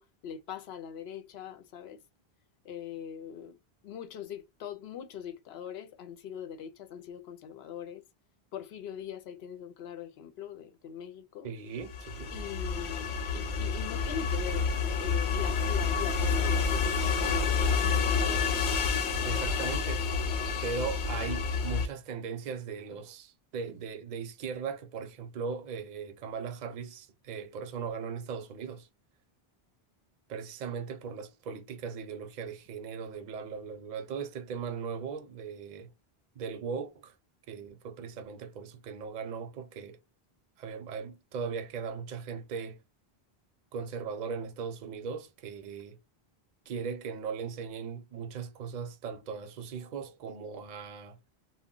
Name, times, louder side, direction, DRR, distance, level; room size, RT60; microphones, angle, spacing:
voice 1, 0.0-2.0 2.6-3.6 3.8-8.0 8.5-11.5 12.3-13.1 13.3-14.7 15.0-18.7 19.3-19.7, left 8 dB, 85° left, 0.8 m, -42 dB
voice 2, 11.4-12.3 19.2-20.0 20.6-28.9 30.3-35.9 36.4-37.1 37.5-40.0 40.6-42.8 43.7-46.0 46.7-51.2, right 6 dB, 55° right, 0.6 m, -38 dB
sound 1, 11.8-21.9, left 5 dB, 60° left, 0.6 m, -29 dB
2.2 x 2.1 x 3.6 m
omnidirectional pair, 1.0 m